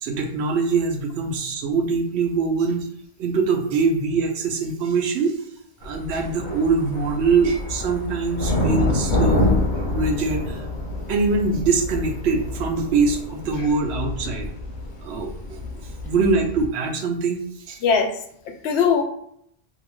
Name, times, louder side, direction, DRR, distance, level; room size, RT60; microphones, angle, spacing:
voice 1, 0.0-2.9 3.2-5.3 5.8-9.6 9.9-10.7 11.1-14.5 15.0-15.3 16.0-17.4 17.7-17.8, right 4 dB, 85° right, 4 dB, 0.8 m, -23 dB
sound 1, 5.8-16.7, left 2 dB, 55° left, 0.7 m, -27 dB
voice 2, 17.8-19.0, left 6 dB, 85° left, 4 dB, 0.8 m, -21 dB
2.7 x 2.2 x 3.0 m, 0.69 s
omnidirectional pair, 1.1 m